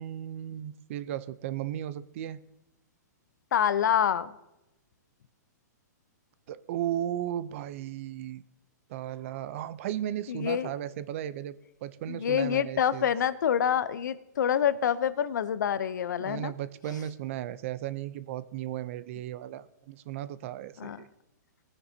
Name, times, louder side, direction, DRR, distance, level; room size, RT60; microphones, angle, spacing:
voice 1, 0.0-2.4 6.5-8.4 8.9-13.1 16.2-21.1, right 12 dB, 45° right, 17 dB, 0.5 m, -35 dB
voice 2, 3.5-4.3 10.3-10.7 12.1-16.5 20.8-21.0, left 9 dB, 75° left, 15 dB, 0.7 m, -27 dB
19.0 x 9.8 x 2.8 m, 0.95 s
hypercardioid pair, 150°, 10 cm